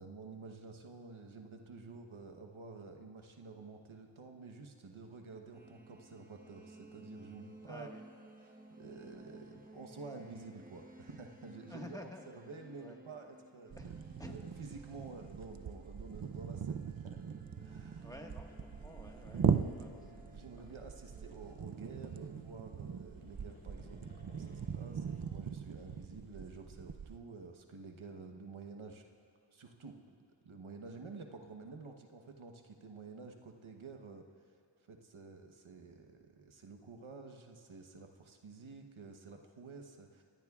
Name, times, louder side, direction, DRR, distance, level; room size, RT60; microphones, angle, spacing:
voice 1, 0.0-7.9 8.5-12.1 12.3-13.7 14.3-18.1 20.3-29.0 29.5-30.2 30.4-34.3 34.9-40.2, right 4 dB, 85° right, 4 dB, 1.1 m, -50 dB
sound 1, 5.5-25.2, right 1 dB, 20° right, 1.2 m, -58 dB
voice 2, 7.7-8.0 9.6-9.7 11.7-12.3 12.7-13.0 13.8-13.9 14.2-14.4 17.8-20.7 21.7-22.3 25.9-26.1, left 1 dB, 10° left, 1 dB, 1.5 m, -52 dB
sound 2, 13.7-27.2, right 7 dB, 50° right, 0.6 m, -40 dB
sound 3, 17.4-21.8 22.7-26.4, equal, 30° left, 3.1 m, -60 dB
24.5 x 16.5 x 2.4 m, 2.5 s
wide cardioid pair, 50°, 47 cm